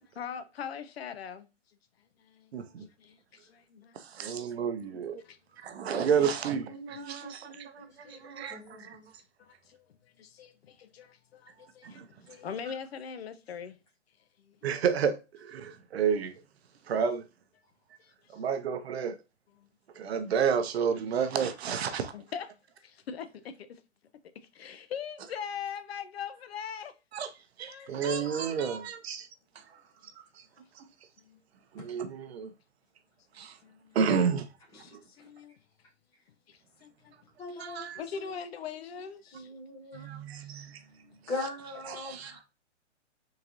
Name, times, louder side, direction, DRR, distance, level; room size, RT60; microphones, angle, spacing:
voice 1, 0.1-1.5 2.2-2.5 3.0-4.6 5.2-5.4 7.8-8.2 8.8-9.0 9.4-13.8 14.4-14.6 18.0-18.4 19.6-19.7 22.1-22.5 22.8-23.8 24.5-26.9 27.7-28.7 30.0-30.1 31.2-31.4 33.4-34.0 34.7-35.5 36.5-37.1 37.5-37.6 38.0-39.5 39.9-40.1, left 7 dB, 55° left, 0.5 m, -42 dB
voice 2, 2.5-2.9 3.9-5.2 5.6-9.0 11.8-12.1 14.6-16.3 16.9-17.2 18.3-19.2 20.0-22.1 27.1-27.3 27.6-29.3 29.6-29.7 30.4-30.5 30.8-30.9 31.7-32.5 33.3-33.6 33.9-34.5 34.9-35.0 37.6-38.0 39.9-40.8 41.9-42.4, right 7 dB, 60° right, 0.6 m, -31 dB
voice 3, 6.7-9.1 27.8-28.2 37.4-38.4 39.3-40.1 40.4-40.7 41.3-42.4, left 2 dB, 10° left, 0.5 m, -42 dB
3.7 x 2.5 x 2.9 m
hypercardioid pair, 150°, 37 cm